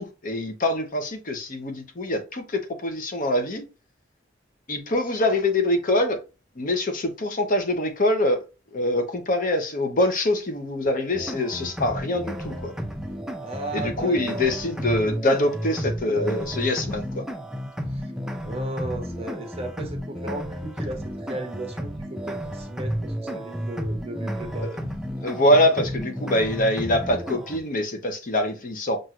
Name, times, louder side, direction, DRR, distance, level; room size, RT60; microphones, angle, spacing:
voice 1, 0.0-3.6 4.7-6.2 6.6-8.5 8.7-12.7 13.7-17.2 24.6-24.8 25.2-29.0, left 1 dB, 45° left, 0.8 m, -24 dB
sound 1, 11.1-27.6, equal, 5° right, 0.4 m, -32 dB
voice 2, 13.4-14.6 17.9-18.1 18.4-24.7, right 1 dB, 30° right, 1.0 m, -35 dB
5.8 x 2.6 x 2.4 m
head